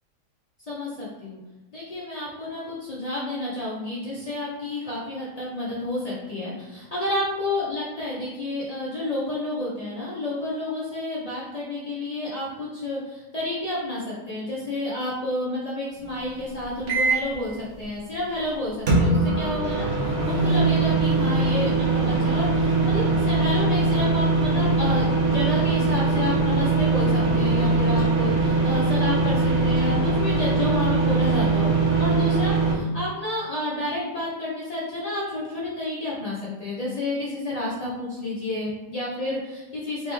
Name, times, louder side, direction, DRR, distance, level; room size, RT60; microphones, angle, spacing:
voice 1, 0.7-1.4 1.7-31.7 32.0-40.1, left 1 dB, 70° left, -7 dB, 0.3 m, -30 dB
sound 1, 16.9-17.3 18.9-32.7, right 3 dB, 55° right, 1.0 m, -21 dB
3.6 x 3.0 x 3.3 m, 1.1 s
omnidirectional pair, 1.8 m